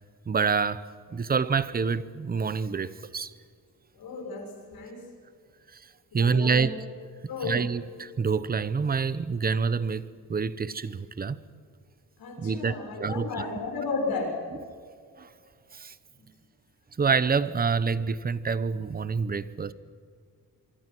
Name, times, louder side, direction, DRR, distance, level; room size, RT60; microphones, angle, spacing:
voice 1, 0.3-3.3 5.7-5.9 6.1-6.7 7.4-11.4 12.4-13.4 15.2-15.3 15.7-15.9 17.0-19.7, right 5 dB, 25° right, 0.8 m, -27 dB
voice 2, 4.0-5.0 6.1-6.7 7.3-7.6 12.2-14.3, left 4 dB, 75° left, 6.7 m, -33 dB
25.5 x 24.5 x 6.2 m
wide cardioid pair, 170°, 36 cm